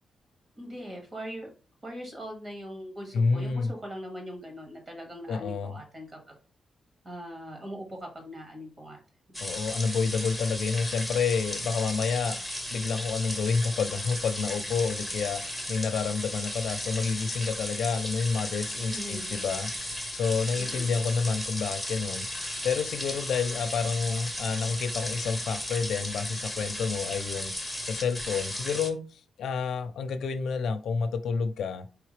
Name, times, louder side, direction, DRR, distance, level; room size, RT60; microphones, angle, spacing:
voice 1, 0.6-1.5 1.8-6.4 7.0-9.0 18.9-19.4 20.6-20.9, equal, 25° right, 1.7 m, -41 dB
voice 2, 3.1-3.7 5.3-5.8 9.4-12.4 12.7-15.4 15.7-22.3 22.6-31.9, left 5 dB, 85° left, 0.5 m, -29 dB
sound 1, 9.3-28.9, left 1 dB, 10° right, 1.0 m, -35 dB
4.7 x 3.4 x 3.2 m
wide cardioid pair, 145°, 0 cm